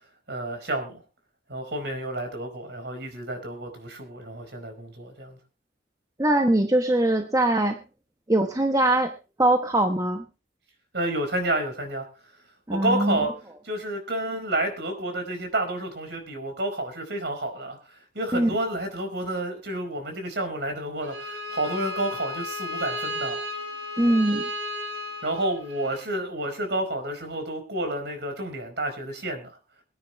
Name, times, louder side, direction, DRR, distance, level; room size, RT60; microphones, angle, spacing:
voice 1, 0.3-1.0 1.5-5.4 10.9-12.1 12.7-13.3 13.6-17.8 18.1-23.4 25.2-29.6, right 1 dB, 60° right, 6 dB, 4.7 m, -30 dB
voice 2, 6.2-7.8 8.3-9.1 9.4-10.2 12.7-13.2 18.3-18.5 24.0-24.5, right 1 dB, 20° right, 5 dB, 1.0 m, -22 dB
Bowed string instrument, 21.0-26.0, left 1 dB, 80° right, 7.3 m, -34 dB
23.0 x 9.6 x 3.1 m, 0.30 s
head